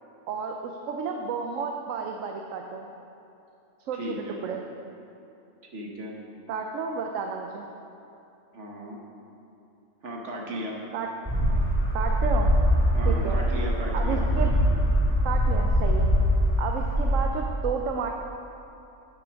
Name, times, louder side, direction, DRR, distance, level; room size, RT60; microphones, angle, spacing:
voice 1, 0.3-2.9 3.9-4.6 6.5-7.7 10.9-11.1 11.9-12.5 13.0-13.4 13.9-14.5 15.2-16.1 16.6-18.1, right 5 dB, 85° right, 3 dB, 1.0 m, -32 dB
voice 2, 3.9-4.4 5.7-6.1 8.5-9.0 10.0-10.8 12.9-14.2, equal, 65° right, -1 dB, 1.5 m, -35 dB
sound 1, 11.3-17.3, equal, 5° right, 1.9 m, -23 dB
9.0 x 5.7 x 6.2 m, 2.7 s
omnidirectional pair, 1.3 m